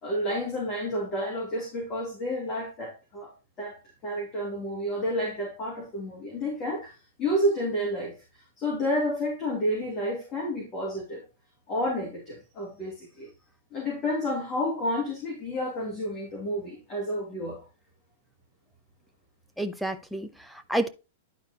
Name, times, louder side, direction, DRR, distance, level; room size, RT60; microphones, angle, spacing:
voice 1, 0.0-3.3 3.6-6.9 7.2-8.1 8.6-11.2 11.7-13.3 13.7-17.6, equal, 30° left, 3.0 m, -30 dB
voice 2, 19.6-20.9, right 1 dB, ahead, 0.7 m, -30 dB
11.0 x 4.5 x 2.9 m
hypercardioid pair, 145°, 0 cm